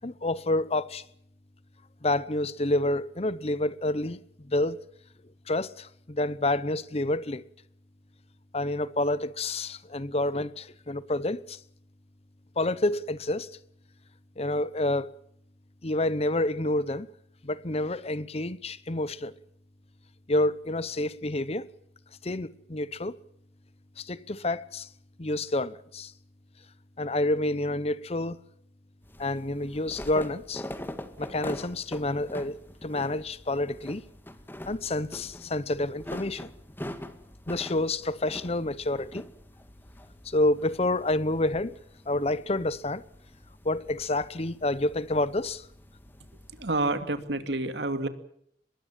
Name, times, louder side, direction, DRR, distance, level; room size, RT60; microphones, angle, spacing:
voice 1, 0.0-1.0 2.0-4.2 4.4-4.8 5.5-7.4 8.5-11.6 12.6-13.5 14.4-15.1 15.8-17.1 17.4-19.3 20.3-21.7 22.2-23.2 24.0-24.9 25.2-26.1 27.0-28.4 29.2-30.7 31.2-34.0 34.7-36.5 37.5-39.3 40.2-41.8 42.1-43.0 43.6-45.7, left 2 dB, 35° left, 0.9 m, -28 dB
sound 1, 29.0-46.9, left 1 dB, 10° left, 1.9 m, -44 dB
voice 2, 46.5-48.1, right 2 dB, 80° right, 2.5 m, -29 dB
24.0 x 22.0 x 7.4 m
head